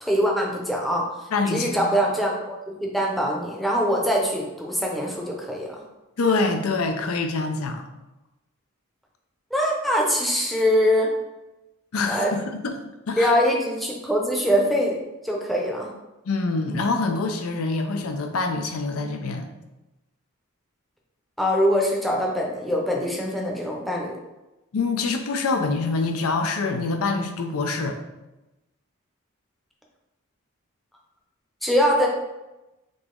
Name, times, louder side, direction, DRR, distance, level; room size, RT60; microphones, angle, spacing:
voice 1, 0.0-1.1 1.5-5.8 9.5-11.1 12.1-12.3 13.2-15.9 21.4-24.1 31.6-32.1, equal, ahead, -2 dB, 0.6 m, -23 dB
voice 2, 1.3-2.0 6.2-7.8 11.9-12.8 13.1-13.3 16.3-19.5 24.7-28.0, left 3 dB, 90° left, 5 dB, 0.5 m, -25 dB
3.9 x 2.9 x 3.7 m, 1.0 s
head